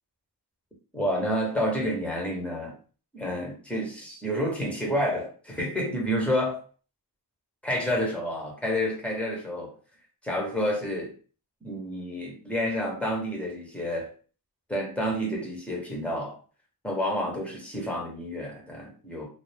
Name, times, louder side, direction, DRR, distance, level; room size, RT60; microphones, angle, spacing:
voice 1, 0.9-2.7 3.1-6.6 7.6-9.7 10.2-11.1 11.6-14.1 14.7-16.4 16.8-19.3, equal, 5° left, -1 dB, 1.1 m, -29 dB
2.3 x 2.0 x 3.4 m, 0.39 s
cardioid pair, 40°, 40 cm